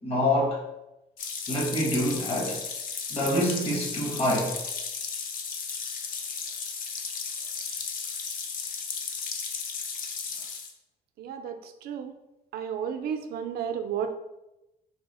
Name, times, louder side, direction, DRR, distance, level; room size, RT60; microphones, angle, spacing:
voice 1, 0.0-0.6 1.5-2.6 3.1-4.5, left 1 dB, 40° left, -2 dB, 1.2 m, -26 dB
sound 1, 1.2-10.7, left 5 dB, 60° left, 0.6 m, -34 dB
voice 2, 11.2-11.5 11.8-12.1 12.5-14.1, right 8 dB, 75° right, 7 dB, 0.5 m, -32 dB
3.3 x 2.7 x 4.1 m, 0.94 s
cardioid pair, 150°, 16 cm